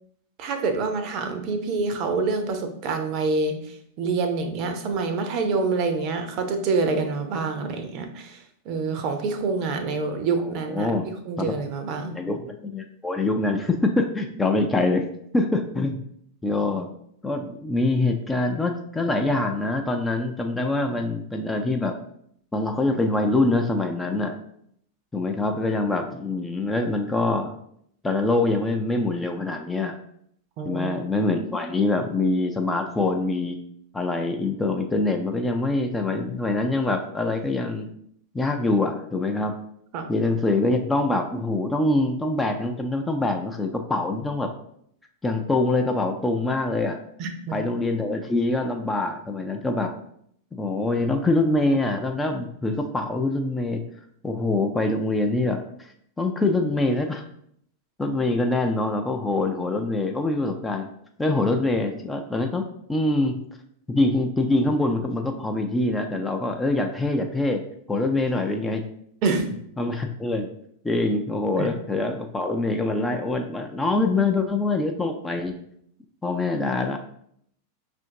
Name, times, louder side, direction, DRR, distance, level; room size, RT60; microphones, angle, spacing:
voice 1, 0.4-8.4 8.7-12.2 20.8-20.9 30.6-31.0 39.9-40.1 47.2-47.6 69.2-69.5 71.6-71.7, right 4 dB, 40° right, 6 dB, 0.6 m, -26 dB
voice 2, 10.4-11.1 11.4-11.5 12.1-15.1 15.3-16.0 16.4-16.9 17.2-21.9 22.5-24.4 25.1-27.5 28.0-30.0 30.6-33.6 33.9-37.9 38.3-39.5 40.1-44.5 45.2-47.0 47.5-49.9 50.5-53.8 54.2-57.2 58.0-60.9 61.2-62.6 62.9-63.4 63.9-67.6 67.9-68.8 69.8-70.5 70.8-75.6 76.2-77.0, left 2 dB, 10° left, 4 dB, 0.4 m, -24 dB
5.5 x 2.6 x 2.7 m, 0.69 s
figure-of-eight pair, 90°, 0 cm